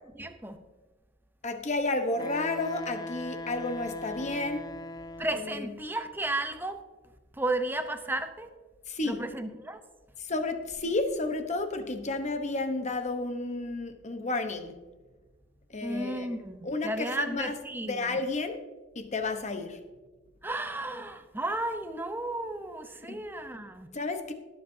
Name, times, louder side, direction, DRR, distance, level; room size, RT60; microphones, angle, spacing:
voice 1, 0.1-0.6 5.2-6.8 7.3-8.5 9.1-9.8 15.8-18.2 20.4-23.9, right 2 dB, 10° right, 7 dB, 0.8 m, -33 dB
voice 2, 1.4-4.7 5.3-5.7 8.9-9.2 10.2-14.8 15.7-17.6 17.8-18.6 18.9-19.8 23.1-23.2 23.9-24.3, left 2 dB, 40° left, 7 dB, 1.1 m, -32 dB
Wind instrument woodwind instrument, 2.2-5.6, left 2 dB, 20° left, 0.4 m, -40 dB
19.0 x 7.8 x 2.8 m, 1.3 s
head